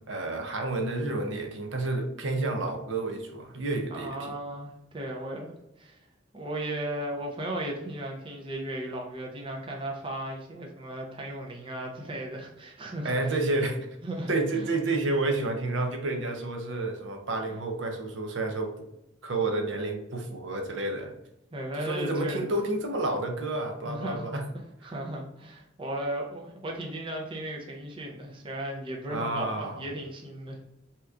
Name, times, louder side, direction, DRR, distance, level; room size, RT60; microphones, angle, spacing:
voice 1, 0.0-4.4 13.0-13.8 14.3-18.9 19.2-21.1 21.7-24.4 29.1-29.8, right 2 dB, 70° right, 3 dB, 0.6 m, -30 dB
voice 2, 3.9-5.5 5.8-6.0 6.3-13.3 14.0-14.7 21.5-22.5 23.9-24.3 24.8-30.6, right 1 dB, 25° right, 0 dB, 0.5 m, -36 dB
2.8 x 2.4 x 3.4 m, 0.83 s
head